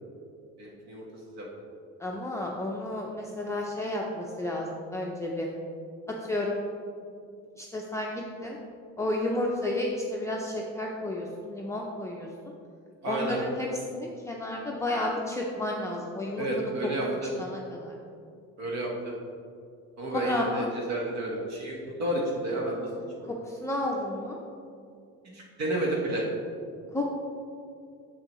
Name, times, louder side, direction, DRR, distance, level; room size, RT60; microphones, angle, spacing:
voice 1, 0.6-1.4 13.0-13.4 16.4-17.3 18.6-19.1 20.0-22.9 23.2-23.3 25.3-26.2, right 1 dB, 60° right, -2 dB, 1.4 m, -31 dB
voice 2, 2.0-5.5 6.2-6.6 7.6-8.6 9.0-12.3 13.0-16.7 17.4-18.0 20.1-20.6 23.2-24.4 26.9-27.1, left 1 dB, 10° left, -2 dB, 0.5 m, -32 dB
7.2 x 6.7 x 3.1 m, 2.4 s
cardioid pair, 115°, 30 cm